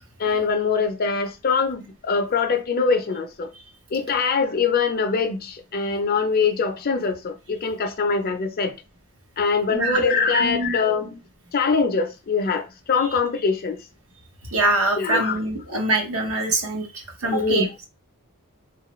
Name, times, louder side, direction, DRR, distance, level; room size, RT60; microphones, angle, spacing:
voice 1, 0.2-3.5 3.9-8.7 9.4-11.2 11.5-13.8 15.0-15.4 17.3-17.7, left 5 dB, 45° left, 0.5 m, -23 dB
voice 2, 9.7-10.0 10.3-10.8 14.5-17.7, right 2 dB, 80° right, 0.9 m, -24 dB
3.0 x 2.4 x 3.0 m
head